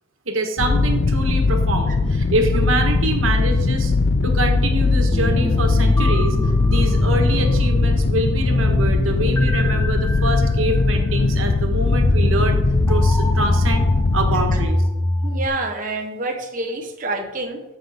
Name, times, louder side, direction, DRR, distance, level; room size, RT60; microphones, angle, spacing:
voice 1, 0.3-3.9 4.2-6.4 6.6-12.6 12.9-13.9 14.1-14.8, right 2 dB, 90° right, 4 dB, 1.3 m, -25 dB
sound 1, 0.6-14.7, left 3 dB, 55° left, 0.4 m, -20 dB
sound 2, 5.1-15.5, left 1 dB, 10° left, 0.8 m, -24 dB
voice 2, 15.2-17.6, right 2 dB, 45° right, 3 dB, 1.0 m, -27 dB
14.0 x 5.7 x 3.5 m, 1.0 s
head